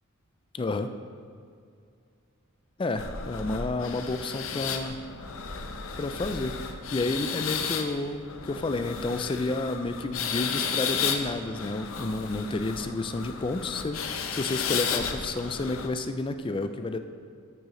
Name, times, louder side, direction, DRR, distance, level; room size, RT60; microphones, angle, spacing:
voice 1, 0.5-1.0 2.8-5.0 6.0-6.6 6.9-17.0, left 2 dB, 25° left, 9 dB, 0.4 m, -30 dB
sound 1, 3.0-15.9, left 6 dB, 80° left, 0.7 m, -33 dB
13.0 x 6.4 x 3.1 m, 2.3 s
head